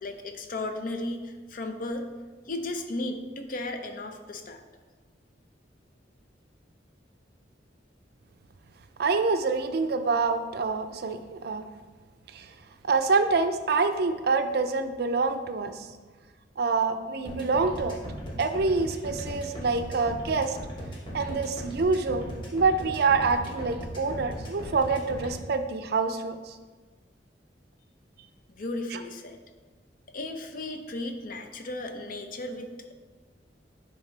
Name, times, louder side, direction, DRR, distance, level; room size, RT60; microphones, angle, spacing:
voice 1, 0.0-2.1 2.5-4.6 28.5-29.4 30.1-32.9, left 2 dB, 50° left, 6 dB, 0.6 m, -35 dB
voice 2, 9.0-11.6 12.3-12.5 12.8-15.9 16.6-18.0 18.4-20.6 21.1-22.3 22.5-26.5 28.9-29.0, right 4 dB, 60° right, 8 dB, 0.4 m, -26 dB
sound 1, 17.2-25.3, equal, 30° left, 1.3 m, -38 dB
10.5 x 3.6 x 3.3 m, 1.4 s
head